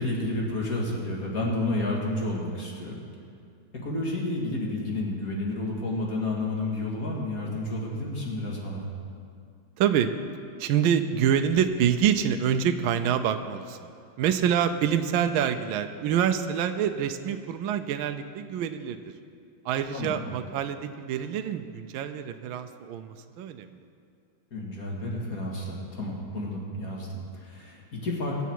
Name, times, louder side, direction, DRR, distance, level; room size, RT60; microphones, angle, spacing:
voice 1, 0.0-3.0 3.8-8.8 19.9-20.2 24.5-28.4, left 2 dB, 45° left, -2 dB, 2.2 m, -30 dB
voice 2, 9.8-10.1 10.6-13.8 14.2-19.1 19.6-23.8, right 8 dB, 80° right, 8 dB, 1.4 m, -26 dB
22.0 x 8.1 x 4.6 m, 2.3 s
omnidirectional pair, 2.3 m